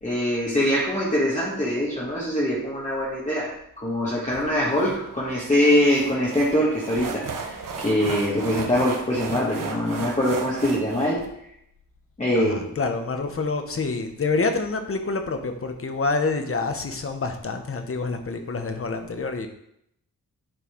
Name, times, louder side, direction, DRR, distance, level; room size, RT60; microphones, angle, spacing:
voice 1, 0.0-3.5 3.8-11.2 12.2-12.6, left 1 dB, 20° left, -6 dB, 2.0 m, -23 dB
sound 1, 4.3-11.3, right 4 dB, 65° right, 1.2 m, -36 dB
voice 2, 12.3-19.5, left 3 dB, 40° left, 6 dB, 1.1 m, -27 dB
10.5 x 4.6 x 4.6 m, 0.75 s
wide cardioid pair, 120°, 34 cm